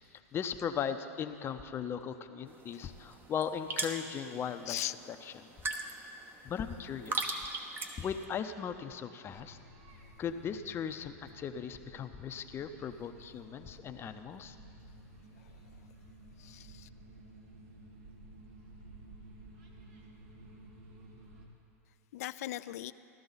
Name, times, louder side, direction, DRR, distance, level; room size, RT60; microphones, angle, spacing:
voice 1, 0.3-4.8 5.4-5.5 6.4-7.4 8.0-9.6 10.2-14.6, left 7 dB, 30° left, 9 dB, 0.7 m, -38 dB
sound 1, 2.5-8.2, right 3 dB, 25° right, 1.0 m, -40 dB
sound 2, 9.3-21.5, right 1 dB, 60° right, 2.2 m, -54 dB
voice 2, 15.3-15.8 16.4-16.9 22.1-22.9, left 14 dB, 70° left, 15 dB, 0.4 m, -40 dB
15.0 x 12.5 x 4.1 m, 2.6 s
hypercardioid pair, 110°, 8 cm